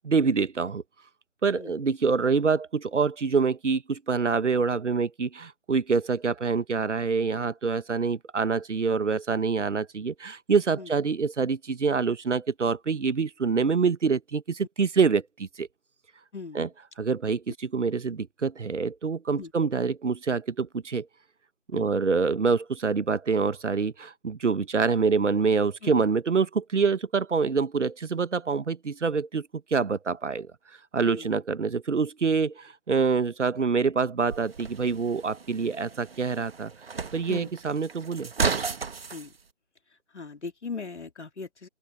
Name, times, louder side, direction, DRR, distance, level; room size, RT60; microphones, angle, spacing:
voice 1, 0.0-0.8 1.4-15.7 16.5-16.7 17.0-21.1 21.7-30.5 30.9-36.7 37.1-38.3, right 5 dB, 70° right, 1.0 m, -26 dB
voice 2, 16.3-16.7 19.4-19.5 21.7-21.9 25.8-26.0 31.0-31.3 37.3-37.5 39.1-39.3 40.1-41.7, left 4 dB, 65° left, 3.0 m, -39 dB
sound 1, 34.3-39.3, right 5 dB, 50° right, 1.8 m, -33 dB
open air
figure-of-eight pair, 150°, 38 cm